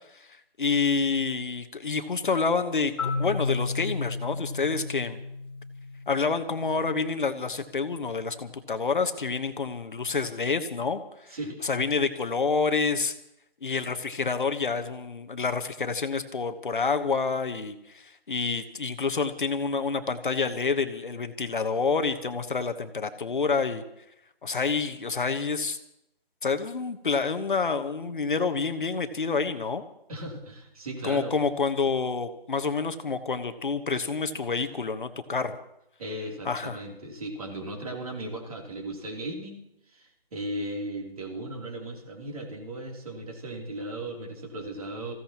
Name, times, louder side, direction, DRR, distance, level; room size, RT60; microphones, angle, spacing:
voice 1, 0.1-5.2 6.1-13.1 13.6-23.8 24.4-25.8 26.4-29.8 31.0-35.6 36.4-36.8, left 4 dB, 55° left, 8 dB, 1.2 m, -28 dB
Marimba xylophone, 3.0-6.9, left 3 dB, 25° left, 2.2 m, -33 dB
voice 2, 11.3-11.6 30.1-31.3 36.0-39.6 39.9-45.1, right 1 dB, 35° right, 0 dB, 3.2 m, -36 dB
26.5 x 16.0 x 3.0 m, 0.78 s
figure-of-eight pair, 165°, 31 cm